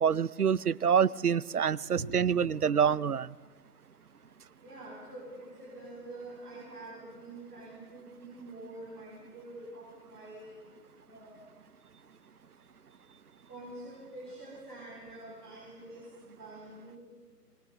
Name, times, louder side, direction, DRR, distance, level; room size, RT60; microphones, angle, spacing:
voice 1, 0.0-3.3, right 7 dB, 65° right, 20 dB, 0.7 m, -26 dB
voice 2, 1.7-2.2 4.6-10.7 11.0-11.4 13.5-17.0, right 2 dB, 10° right, -14 dB, 4.2 m, -46 dB
26.0 x 20.0 x 7.0 m, 1.4 s
figure-of-eight pair, 180°, 48 cm